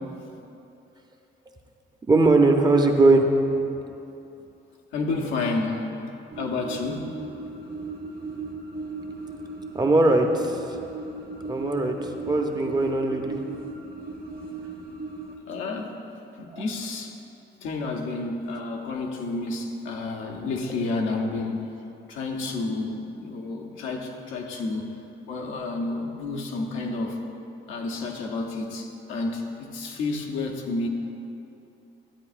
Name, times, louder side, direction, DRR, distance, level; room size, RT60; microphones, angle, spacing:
voice 1, 2.1-3.3 9.7-10.6 11.5-13.4 16.5-16.6, right 2 dB, 20° right, 3 dB, 0.7 m, -20 dB
voice 2, 4.9-6.1 6.4-7.1 15.5-16.0 16.4-17.2 17.6-21.7 22.1-24.9 25.3-27.2 27.7-30.9, left 3 dB, 90° left, 0 dB, 0.9 m, -30 dB
sound 1, 6.3-15.3, right 3 dB, 50° right, 1.3 m, -37 dB
12.0 x 8.2 x 2.5 m, 2.8 s
cardioid pair, 90°, 20 cm